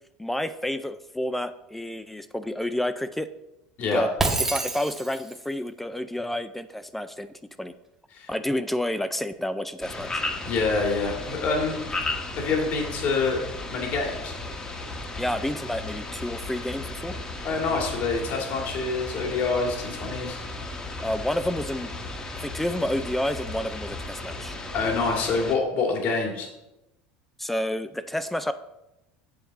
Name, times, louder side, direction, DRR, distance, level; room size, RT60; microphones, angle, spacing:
voice 1, 0.2-3.3 3.9-4.1 4.4-7.3 7.6-7.7 8.3-10.2 15.2-17.2 21.0-21.9 22.3-24.6 27.4-28.5, left 1 dB, 5° left, 11 dB, 0.4 m, -29 dB
Shatter, 4.2-5.4, right 3 dB, 10° right, 1.1 m, -27 dB
sound 1, 9.8-25.6, left 2 dB, 25° left, 1.2 m, -35 dB
voice 2, 10.4-11.8 12.4-14.3 17.4-20.4 24.7-26.5, left 4 dB, 55° left, 0 dB, 2.4 m, -26 dB
7.8 x 7.0 x 4.1 m, 0.92 s
supercardioid pair, 120°, 3 cm